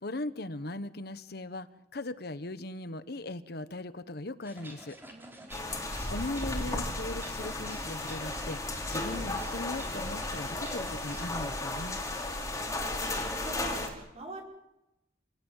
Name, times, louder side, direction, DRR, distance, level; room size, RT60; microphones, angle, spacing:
voice 1, 0.0-5.0 6.1-12.0, left 2 dB, 60° left, 13 dB, 1.2 m, -39 dB
sound 1, 4.4-11.5, right 1 dB, 10° right, 4.4 m, -49 dB
voice 2, 5.1-5.7 12.3-14.4, right 2 dB, 35° right, 0 dB, 5.7 m, -45 dB
sound 2, 5.5-13.9, left 2 dB, 15° left, 4.2 m, -34 dB
28.0 x 17.0 x 9.1 m, 0.92 s
head